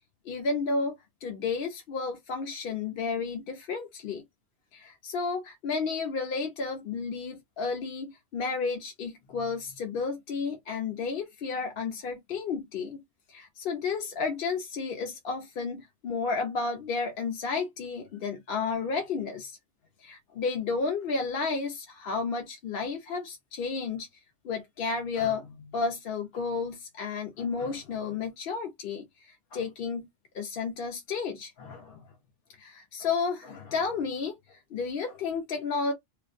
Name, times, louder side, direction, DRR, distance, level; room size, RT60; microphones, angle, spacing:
voice 1, 0.2-4.2 4.7-13.0 13.3-19.6 20.0-24.1 24.4-30.1 30.3-32.0 32.6-35.9, left 4 dB, 60° left, 0.7 m, -32 dB
2.4 x 2.1 x 2.4 m
omnidirectional pair, 1.2 m